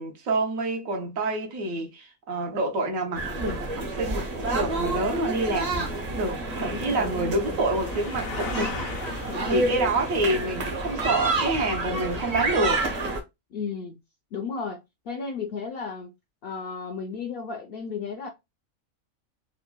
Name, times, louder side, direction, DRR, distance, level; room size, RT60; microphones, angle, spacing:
voice 1, 0.0-8.8 9.2-12.8, right 2 dB, 80° right, 1.3 m, -28 dB
sound 1, 3.1-13.2, right 2 dB, 45° right, 0.5 m, -29 dB
sound 2, 4.9-12.4, left 5 dB, 85° left, 1.1 m, -41 dB
voice 2, 6.6-7.2 9.3-9.9 13.5-14.0 14.3-14.8 15.1-16.1 16.4-18.3, left 5 dB, 65° left, 0.6 m, -34 dB
3.6 x 2.1 x 2.2 m
omnidirectional pair, 1.4 m